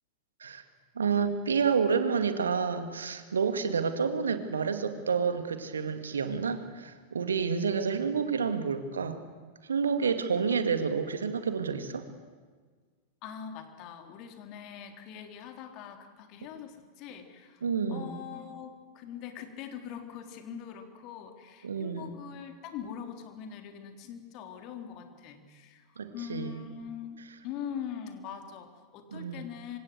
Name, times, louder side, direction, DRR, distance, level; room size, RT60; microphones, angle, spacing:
voice 1, 1.0-9.2 9.6-12.1 17.6-18.2 21.6-22.1 26.0-26.6 27.2-27.4 29.1-29.4, right 6 dB, 70° right, 9 dB, 2.2 m, -29 dB
voice 2, 13.2-17.6 17.9-25.8 26.1-27.2 27.4-29.8, left 8 dB, 40° left, 5 dB, 3.6 m, -42 dB
26.5 x 25.5 x 8.0 m, 1.5 s
figure-of-eight pair, 90°, 0 cm